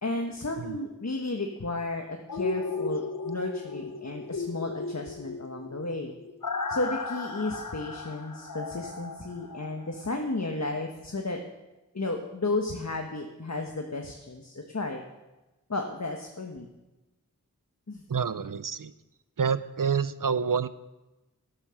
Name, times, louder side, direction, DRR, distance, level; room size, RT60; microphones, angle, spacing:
voice 1, 0.0-6.1 6.7-11.4 11.9-15.0 15.7-16.7 17.9-18.0, left 2 dB, 55° left, 2 dB, 1.5 m, -33 dB
sound 1, 2.3-10.2 10.5-10.6, left 3 dB, 70° left, 1.1 m, -35 dB
voice 2, 18.1-18.9 19.4-20.7, right 6 dB, 75° right, 14 dB, 0.7 m, -28 dB
13.0 x 12.0 x 6.5 m, 1.0 s
wide cardioid pair, 45°, 32 cm